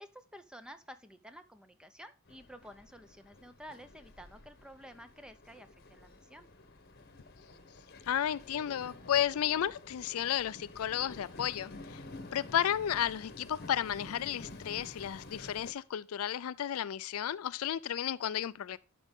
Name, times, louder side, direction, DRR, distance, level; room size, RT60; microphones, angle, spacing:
voice 1, 0.0-6.5, equal, 5° right, 0.6 m, -51 dB
Train, 2.3-15.7, left 2 dB, 45° left, 1.0 m, -50 dB
voice 2, 8.1-12.0 12.3-18.8, left 10 dB, 75° left, 0.4 m, -33 dB
11.5 x 5.0 x 3.6 m
head